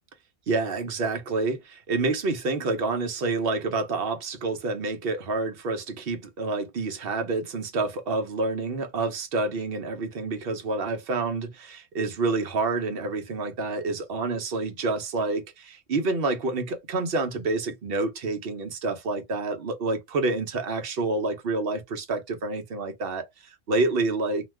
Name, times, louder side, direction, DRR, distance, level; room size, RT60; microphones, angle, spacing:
voice 1, 0.5-24.5, right 3 dB, 60° right, 0.9 m, -28 dB
2.4 x 2.2 x 3.2 m
omnidirectional pair, 1.2 m